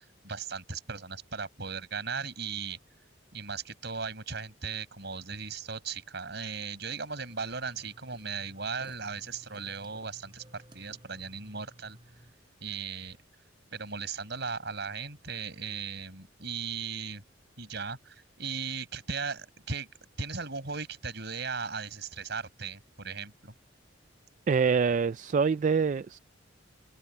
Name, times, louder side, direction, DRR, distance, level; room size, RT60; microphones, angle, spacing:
voice 1, 0.0-2.8 3.3-12.0 12.6-13.2 13.7-17.2 17.6-23.5, right 5 dB, 60° right, 5.9 m, -37 dB
sound 1, 7.2-12.3, equal, 25° right, 4.4 m, -55 dB
voice 2, 24.5-26.2, right 5 dB, 40° right, 0.3 m, -25 dB
head